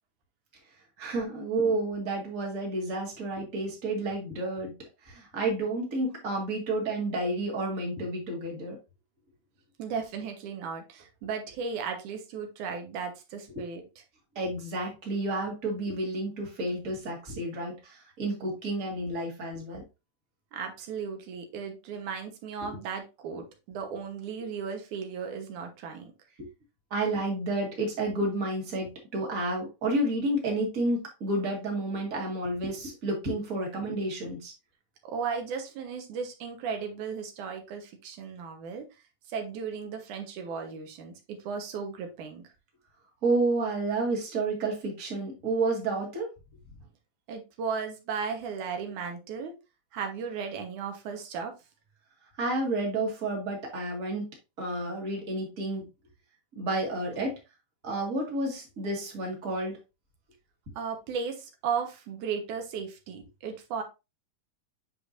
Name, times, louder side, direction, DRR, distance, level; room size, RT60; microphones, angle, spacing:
voice 1, 1.0-4.8 5.0-8.8 13.5-13.6 14.4-19.8 22.6-22.7 26.4-26.5 26.9-34.5 43.2-46.3 52.4-54.3 54.6-55.9 56.6-57.4 57.8-59.8, right 2 dB, 30° right, -1 dB, 2.1 m, -30 dB
voice 2, 9.8-13.8 20.5-26.1 35.0-38.8 39.3-42.4 47.3-49.5 49.9-51.5 60.8-63.8, right 6 dB, 90° right, 4 dB, 2.6 m, -35 dB
8.4 x 5.1 x 2.6 m, 0.26 s
omnidirectional pair, 3.4 m